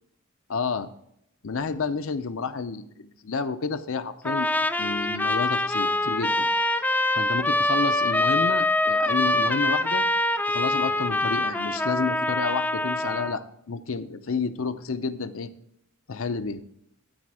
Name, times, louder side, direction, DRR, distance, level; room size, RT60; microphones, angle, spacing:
voice 1, 0.5-0.9 1.4-4.5 4.8-6.5 7.2-10.0 10.5-15.5 16.1-16.6, left 4 dB, 65° left, 11 dB, 0.6 m, -30 dB
Trumpet, 4.2-13.4, left 1 dB, 10° left, 0.4 m, -24 dB
13.0 x 5.1 x 4.8 m, 0.75 s
head